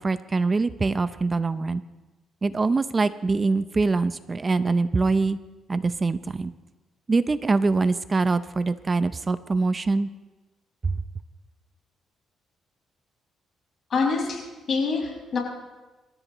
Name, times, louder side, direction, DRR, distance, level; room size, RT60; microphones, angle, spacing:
voice 1, 0.0-1.8 2.4-5.4 5.7-6.5 7.1-10.1 10.8-10.9, right 3 dB, 30° right, 13 dB, 0.6 m, -24 dB
voice 2, 13.9-14.4 14.7-15.4, left 4 dB, 55° left, 0 dB, 5.8 m, -25 dB
27.0 x 15.0 x 3.0 m, 1.2 s
cardioid pair, 90°, 0 cm